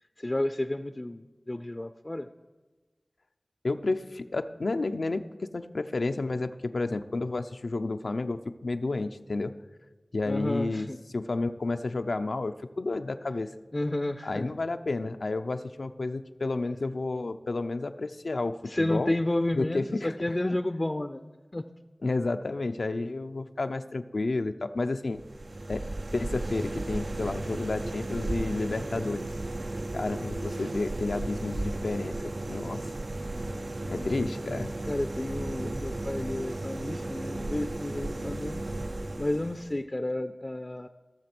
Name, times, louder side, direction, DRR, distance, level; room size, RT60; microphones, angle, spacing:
voice 1, 0.2-2.3 10.2-11.0 13.7-14.5 18.7-21.6 33.3-34.3 34.9-38.6 39.2-40.9, left 1 dB, 30° left, 9 dB, 0.5 m, -31 dB
voice 2, 3.6-5.2 5.5-9.5 10.1-10.9 11.1-13.5 14.2-19.1 19.6-20.6 22.0-25.2 25.7-25.8 26.1-29.3 29.9-32.2 32.5-32.8 33.9-34.7, left 3 dB, 85° left, 8 dB, 0.6 m, -31 dB
sound 1, 25.1-39.8, right 2 dB, 55° right, 0.4 m, -35 dB
16.0 x 7.1 x 6.0 m, 1.2 s
wide cardioid pair, 65°, 0 cm